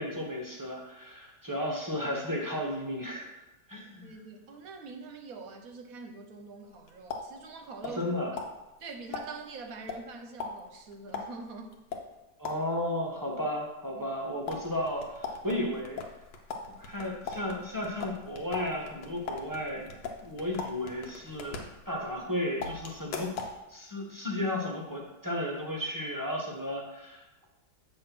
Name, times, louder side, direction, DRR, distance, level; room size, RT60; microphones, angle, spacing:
voice 1, 0.0-3.3 3.7-4.1 8.0-8.3 12.4-16.0 16.6-19.9 20.2-23.3 23.7-27.5, left 1 dB, 15° right, -1 dB, 0.7 m, -34 dB
voice 2, 4.0-8.1 8.3-8.4 8.8-11.7, right 4 dB, 60° right, 4 dB, 1.1 m, -44 dB
sound 1, 6.6-8.1 8.4-12.9 14.5-22.3 22.6-23.6, left 4 dB, 85° left, 1.5 m, -40 dB
8.0 x 3.2 x 5.9 m, 0.97 s
omnidirectional pair, 1.8 m